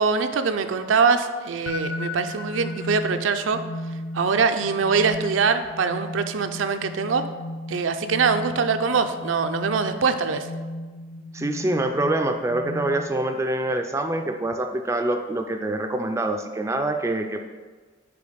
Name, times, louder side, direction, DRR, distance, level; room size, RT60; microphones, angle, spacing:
voice 1, 0.0-3.6 4.1-7.2 7.7-10.5, right 5 dB, 80° right, 8 dB, 0.5 m, -23 dB
sound 1, 1.7-13.4, left 1 dB, 65° left, 0.5 m, -35 dB
voice 2, 11.3-17.4, right 1 dB, 15° right, 5 dB, 0.3 m, -25 dB
6.9 x 4.6 x 5.0 m, 1.4 s
head